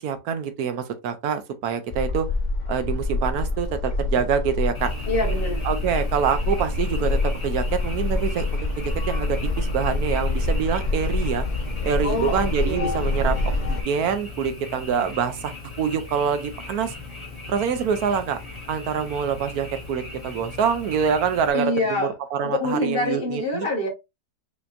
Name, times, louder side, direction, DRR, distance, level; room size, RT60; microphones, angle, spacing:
voice 1, 0.0-2.3 2.7-4.9 5.6-11.4 11.8-16.9 17.5-18.4 18.7-23.7, right 7 dB, 70° right, 1.1 m, -26 dB
sound 1, 1.9-13.8, left 2 dB, 80° left, 0.4 m, -26 dB
Frog, 4.7-21.5, left 3 dB, 15° left, 1.7 m, -39 dB
voice 2, 5.1-5.6 12.0-13.1 21.5-22.1 22.4-23.9, left 2 dB, 40° left, 1.1 m, -26 dB
5.2 x 2.9 x 2.4 m
omnidirectional pair, 1.8 m